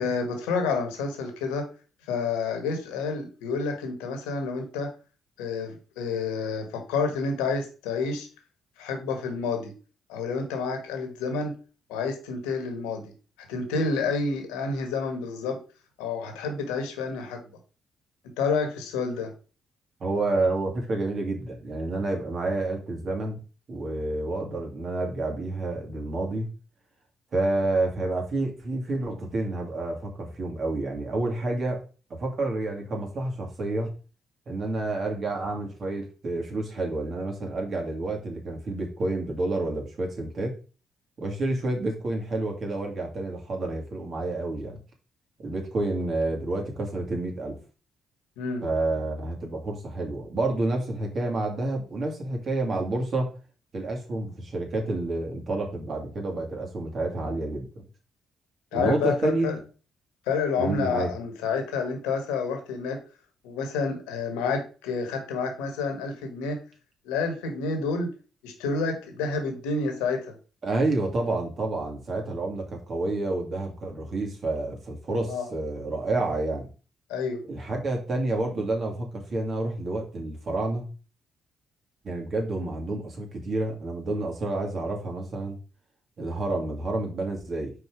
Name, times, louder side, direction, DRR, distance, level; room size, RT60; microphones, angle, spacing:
voice 1, 0.0-1.7 2.1-4.9 5.4-8.3 8.8-9.7 10.1-11.5 11.9-13.1 13.5-15.6 16.0-17.4 18.4-19.3 48.4-48.7 58.7-59.5 60.3-63.0 63.4-66.6 67.0-68.1 68.4-70.3 75.3-75.4 77.1-77.4, left 4 dB, 90° left, 5 dB, 1.5 m, -29 dB
voice 2, 20.0-23.4 23.7-26.5 27.3-31.8 32.1-33.9 34.5-40.6 41.2-44.8 45.4-47.6 48.6-53.3 53.7-57.8 58.7-59.6 60.6-61.1 70.6-76.7 77.5-80.9 82.0-85.6 86.2-87.7, right 2 dB, 55° right, 2 dB, 2.4 m, -29 dB
5.0 x 4.2 x 5.0 m, 0.36 s
supercardioid pair, 55°, 0 cm